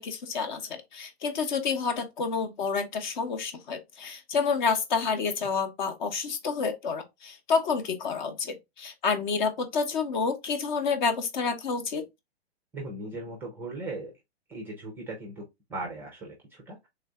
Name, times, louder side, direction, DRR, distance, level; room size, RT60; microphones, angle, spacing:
voice 1, 0.0-12.0, left 5 dB, 45° left, 1.0 m, -29 dB
voice 2, 12.7-14.1 14.5-16.9, right 2 dB, 5° right, 0.4 m, -38 dB
3.3 x 2.5 x 3.5 m
hypercardioid pair, 135°, 32 cm